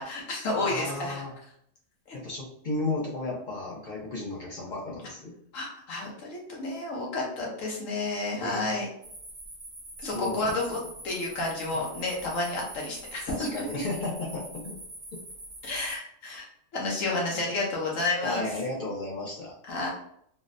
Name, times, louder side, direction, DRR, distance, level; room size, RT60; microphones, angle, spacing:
voice 1, 0.0-1.2 2.1-2.2 5.5-8.9 10.0-10.8 11.0-13.6 15.6-16.4 16.7-18.5 19.7-19.9, left 2 dB, 75° left, -2 dB, 1.3 m, -31 dB
voice 2, 0.6-1.3 2.1-5.4 8.4-8.7 10.1-10.6 13.3-14.8 15.1-15.2 18.2-19.6, left 2 dB, 50° left, -4 dB, 0.6 m, -34 dB
sound 1, 9.0-16.0, right 2 dB, 30° right, 0.7 m, -44 dB
3.7 x 2.1 x 2.5 m, 0.69 s
omnidirectional pair, 1.4 m